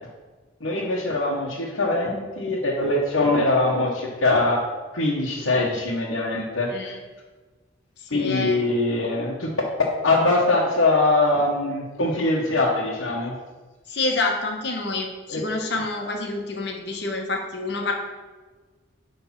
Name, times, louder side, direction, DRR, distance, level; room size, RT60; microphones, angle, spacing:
voice 1, 0.6-4.6 4.9-6.7 8.1-9.5 10.0-13.3 15.3-15.4, left 2 dB, 85° left, -4 dB, 1.1 m, -22 dB
voice 2, 8.0-8.6 13.9-17.9, left 3 dB, 55° left, 2 dB, 1.1 m, -28 dB
9.8 x 3.5 x 5.8 m, 1.3 s
head